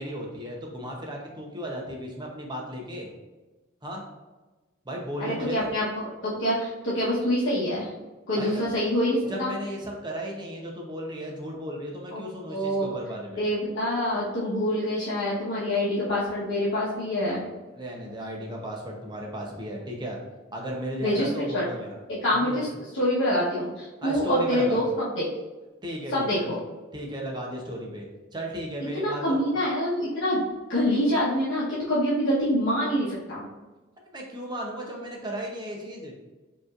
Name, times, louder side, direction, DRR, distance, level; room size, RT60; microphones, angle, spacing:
voice 1, 0.0-3.1 3.8-4.0 4.8-5.7 8.4-8.6 9.3-13.4 17.7-20.2 20.5-22.0 22.4-22.6 24.0-24.8 25.8-26.4 26.9-28.1 28.3-29.4 34.1-36.2, right 1 dB, 20° right, -1 dB, 0.8 m, -35 dB
voice 2, 5.2-7.9 8.3-9.5 12.1-12.2 12.5-12.9 13.4-17.5 21.0-21.6 22.2-22.7 22.9-25.3 26.1-26.6 28.9-30.4 30.7-33.5, equal, 70° left, -9 dB, 1.1 m, -26 dB
5.1 x 3.1 x 2.4 m, 1.2 s
head